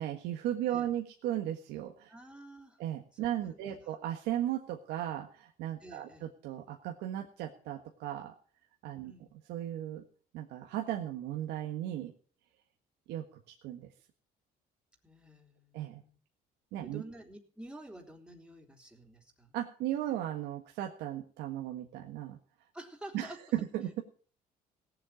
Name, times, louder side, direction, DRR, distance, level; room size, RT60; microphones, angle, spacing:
voice 1, 0.0-2.1 2.8-8.3 8.8-9.1 9.5-10.0 10.3-12.1 13.1-13.9 15.7-16.0 16.7-17.0 19.5-22.4 23.1-23.9, right 12 dB, 90° right, 3 dB, 1.6 m, -36 dB
voice 2, 2.1-2.8 3.2-3.8 5.8-6.2 9.0-9.3 15.0-16.2 16.8-19.5 22.7-23.5, right 1 dB, 5° right, 2 dB, 3.4 m, -50 dB
17.5 x 7.8 x 7.4 m, 0.42 s
cardioid pair, 110°, 17 cm